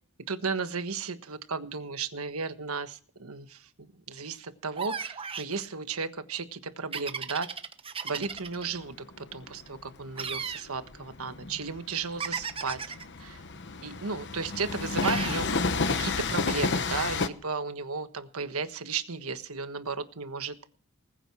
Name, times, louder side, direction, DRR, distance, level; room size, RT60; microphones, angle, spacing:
voice 1, 0.3-7.5 8.0-12.8 13.2-13.4 13.8-15.6 15.9-20.6, right 4 dB, 75° right, 9 dB, 1.4 m, -34 dB
sound 1, 4.8-5.5 6.9-8.6 10.2-10.7 12.2-13.0 15.0-15.5, right 6 dB, 25° right, 0.9 m, -35 dB
Train, 8.2-17.3, left 4 dB, 50° left, 1.0 m, -31 dB
20.0 x 9.0 x 6.2 m, 0.43 s
head